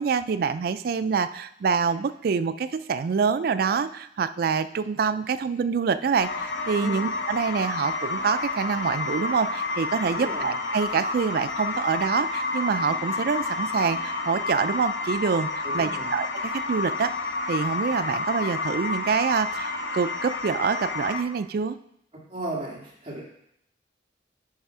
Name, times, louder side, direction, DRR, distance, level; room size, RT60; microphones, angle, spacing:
voice 1, 0.0-17.1 17.5-21.8, right 5 dB, 55° right, 12 dB, 0.3 m, -26 dB
sound 1, 6.2-21.2, left 3 dB, 75° left, 0.6 m, -30 dB
voice 2, 10.1-10.5 15.6-16.1 22.3-23.2, right 1 dB, 30° right, -4 dB, 1.9 m, -35 dB
9.6 x 3.4 x 5.5 m, 0.74 s
head